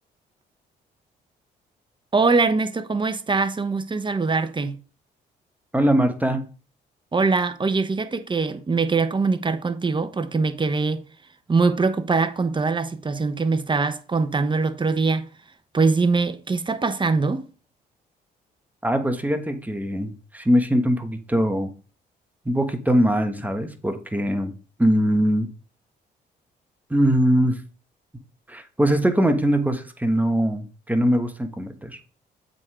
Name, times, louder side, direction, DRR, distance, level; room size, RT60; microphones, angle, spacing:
voice 1, 2.1-4.8 7.1-11.0 11.5-15.3 15.7-17.4, right 4 dB, 25° right, 0.9 m, -22 dB
voice 2, 5.7-6.4 18.8-21.7 22.4-24.5 24.8-25.5 26.9-27.6 28.5-32.0, equal, 10° right, 1.3 m, -22 dB
7.6 x 3.8 x 4.9 m
supercardioid pair, 60°, 19 cm